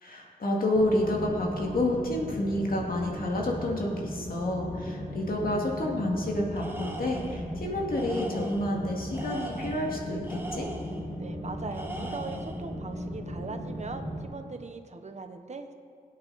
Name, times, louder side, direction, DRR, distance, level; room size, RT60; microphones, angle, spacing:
voice 1, 0.0-10.7, left 1 dB, 70° left, -1 dB, 2.4 m, -29 dB
sound 1, 0.8-14.2, equal, 35° left, 2.2 m, -37 dB
Tools, 6.6-7.5 7.9-8.7 9.1-11.0 11.7-12.6, right 2 dB, 15° right, 1.4 m, -40 dB
voice 2, 11.2-15.7, right 4 dB, 45° right, 6 dB, 1.2 m, -40 dB
21.5 x 8.8 x 4.2 m, 2.2 s
wide cardioid pair, 75°, 15 cm